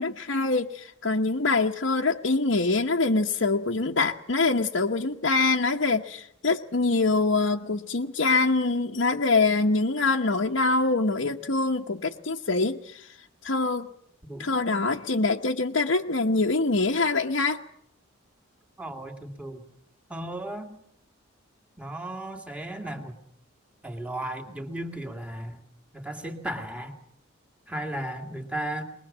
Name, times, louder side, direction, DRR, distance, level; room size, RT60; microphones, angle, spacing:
voice 1, 0.0-13.1 13.4-13.9 14.4-17.6, left 3 dB, 70° left, -1 dB, 1.1 m, -24 dB
voice 2, 18.8-19.6 20.1-20.7 21.8-23.2 23.8-25.6 25.9-27.0 27.7-28.8, right 1 dB, 5° right, 4 dB, 2.3 m, -35 dB
22.5 x 21.0 x 7.4 m, 0.70 s
head